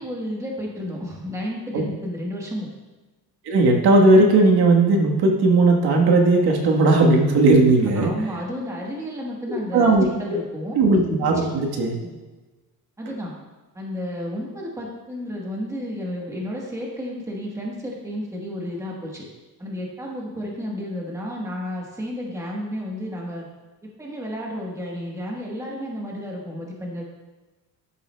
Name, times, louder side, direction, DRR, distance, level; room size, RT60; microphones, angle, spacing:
voice 1, 0.0-2.7 7.7-10.8 11.2-11.5 12.0-12.2 13.0-13.3 13.7-19.3 19.6-23.4 24.0-27.0, equal, 10° right, -3 dB, 1.2 m, -32 dB
voice 2, 3.4-8.1 9.7-10.0 10.7-12.0, right 2 dB, 85° right, 1 dB, 1.4 m, -17 dB
12.5 x 7.1 x 2.2 m, 1.2 s
cardioid pair, 180°, 38 cm